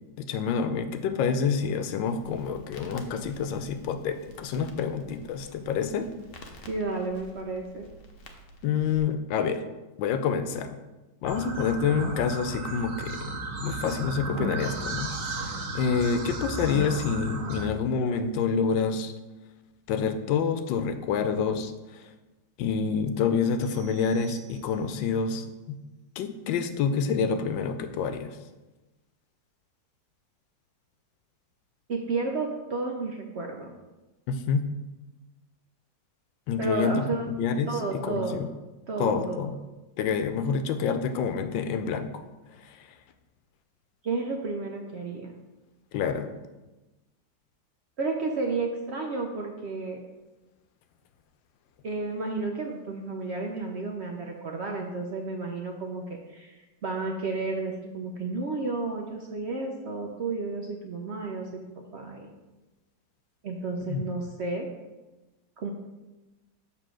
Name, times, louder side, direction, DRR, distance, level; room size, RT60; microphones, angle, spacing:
voice 1, 0.2-6.1 8.6-9.6 10.0-10.8 11.2-13.2 13.6-19.1 19.9-22.1 22.6-25.8 26.2-28.4 34.3-34.7 36.5-38.5 39.0-39.6 40.0-42.2 42.5-42.9 45.9-46.3 63.8-64.1, left 6 dB, 90° left, 9 dB, 1.3 m, -28 dB
Crackle, 2.1-9.0, equal, 55° left, 0.7 m, -50 dB
voice 2, 6.6-7.9 31.9-33.7 36.6-37.2 37.7-38.4 38.9-39.4 44.0-45.3 48.0-50.0 51.8-61.6 61.9-62.3 63.4-64.7 65.6-65.7, right 3 dB, 80° right, 1 dB, 0.6 m, -32 dB
sound 1, 11.3-17.6, right 2 dB, 55° right, 1.0 m, -34 dB
sound 2, 23.6-25.2, right 11 dB, 25° right, 0.7 m, -54 dB
6.8 x 3.5 x 6.1 m, 1.1 s
omnidirectional pair, 2.0 m